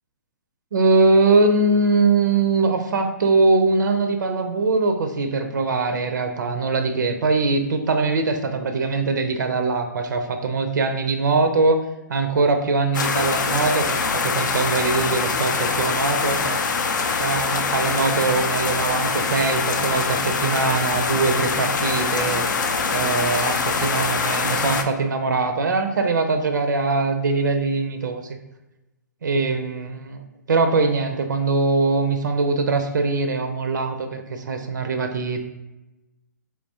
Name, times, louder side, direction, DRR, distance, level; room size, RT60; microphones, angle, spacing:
voice 1, 0.7-11.8 12.1-16.6 17.2-28.2 29.2-30.2 30.5-35.4, right 3 dB, 75° right, 7 dB, 0.4 m, -22 dB
sound 1, 12.9-24.8, left 4 dB, 75° left, 0.4 m, -23 dB
3.5 x 2.8 x 2.7 m, 0.99 s
hypercardioid pair, 130°, 10 cm